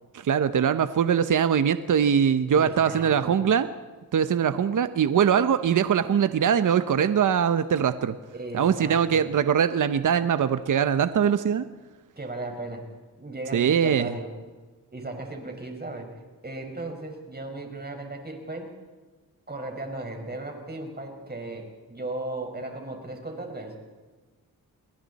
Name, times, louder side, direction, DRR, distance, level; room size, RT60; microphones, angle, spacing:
voice 1, 0.1-3.7 4.1-8.1 8.5-11.6 13.5-14.1, right 8 dB, 55° right, 11 dB, 0.9 m, -22 dB
voice 2, 2.6-3.3 8.3-9.3 12.2-12.9 13.2-14.3 14.9-16.1 16.4-18.7 19.5-23.7, right 2 dB, 25° right, 3 dB, 5.4 m, -36 dB
28.5 x 21.5 x 4.2 m, 1.3 s
cardioid pair, 70°, 36 cm